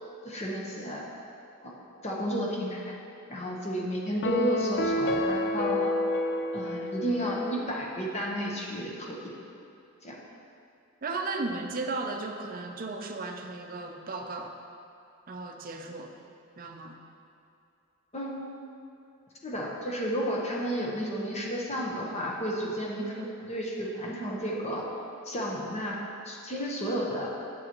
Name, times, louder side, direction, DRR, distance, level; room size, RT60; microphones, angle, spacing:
voice 1, 0.2-1.1 1.6-1.7 2.0-2.9 3.3-5.9 6.5-9.2 10.0-10.2 18.1-18.4 19.4-24.9 25.2-26.0 26.2-27.3, equal, 30° left, -3 dB, 1.0 m, -32 dB
sound 1, 4.2-7.7, left 1 dB, 50° left, 0.5 m, -29 dB
voice 2, 11.0-14.5 15.3-16.1 16.6-17.0, right 3 dB, 40° right, 3 dB, 0.6 m, -35 dB
8.9 x 7.8 x 3.0 m, 2.6 s
head